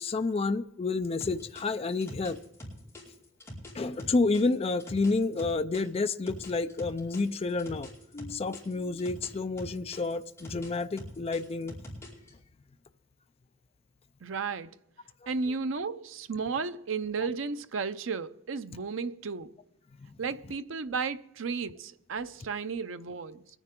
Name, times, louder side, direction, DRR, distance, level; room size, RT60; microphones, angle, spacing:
voice 1, 0.0-2.4 3.7-11.8 15.2-15.3 20.0-20.1, left 3 dB, 30° left, 0.4 m, -30 dB
sound 1, 1.2-5.8 6.3-9.3 9.6-12.3, left 1 dB, 15° left, 4.8 m, -44 dB
voice 2, 14.2-14.8 15.3-19.5 20.2-23.4, right 5 dB, 80° right, 0.6 m, -33 dB
23.0 x 10.0 x 3.7 m
head